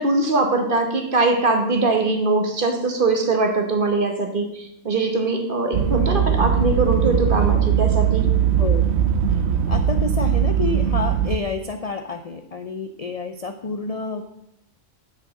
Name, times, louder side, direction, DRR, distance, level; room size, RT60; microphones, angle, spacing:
voice 1, 0.0-8.3, right 3 dB, 40° right, 4 dB, 1.3 m, -21 dB
sound 1, 5.7-11.4, right 9 dB, 60° right, 0.8 m, -20 dB
voice 2, 9.3-14.2, left 4 dB, 60° left, 6 dB, 0.3 m, -29 dB
7.3 x 5.4 x 7.5 m, 0.80 s
omnidirectional pair, 1.4 m